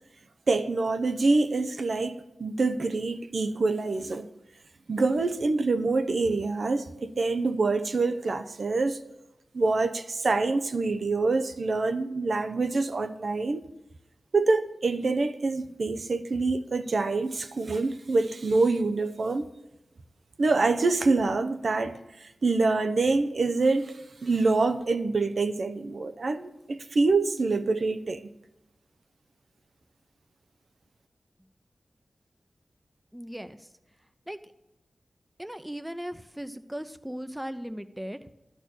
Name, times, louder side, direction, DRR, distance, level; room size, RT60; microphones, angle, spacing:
voice 1, 0.5-4.3 4.9-9.0 9.5-13.6 14.3-19.5 20.4-28.3, right 3 dB, 70° right, 0.7 m, -26 dB
voice 2, 33.1-33.7 34.3-34.4 35.4-38.2, equal, 5° right, 0.7 m, -37 dB
12.0 x 4.6 x 8.3 m
cardioid pair, 45°, 0 cm